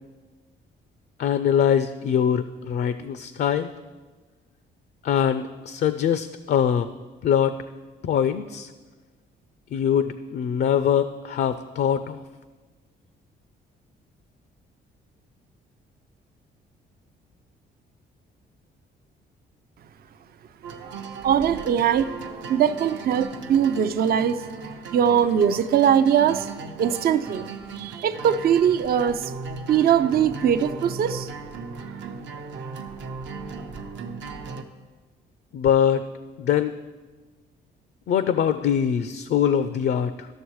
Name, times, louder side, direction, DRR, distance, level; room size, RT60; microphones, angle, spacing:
voice 1, 1.2-3.7 5.0-6.9 7.2-7.5 8.0-8.7 9.7-12.2 35.5-36.0 36.4-36.8 38.1-40.3, left 8 dB, 55° left, 11 dB, 0.4 m, -23 dB
sound 1, 20.6-34.6, right 4 dB, 70° right, 0.8 m, -37 dB
voice 2, 21.2-22.1 22.5-24.4 24.9-26.5 26.8-27.5 27.8-29.3 29.7-31.3, right 8 dB, 50° right, 11 dB, 0.4 m, -21 dB
13.0 x 6.4 x 3.1 m, 1.3 s
cardioid pair, 90°, 20 cm